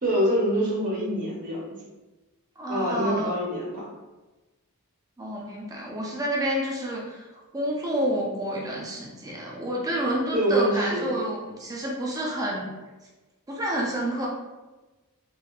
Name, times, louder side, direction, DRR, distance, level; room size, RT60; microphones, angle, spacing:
voice 1, 0.0-1.7 2.7-3.9 10.3-11.1, equal, 40° right, -6 dB, 0.9 m, -25 dB
voice 2, 2.6-3.3 5.2-7.2 7.5-12.7 13.5-14.3, right 1 dB, 15° right, -3 dB, 0.6 m, -29 dB
3.3 x 2.7 x 2.4 m, 1.1 s
head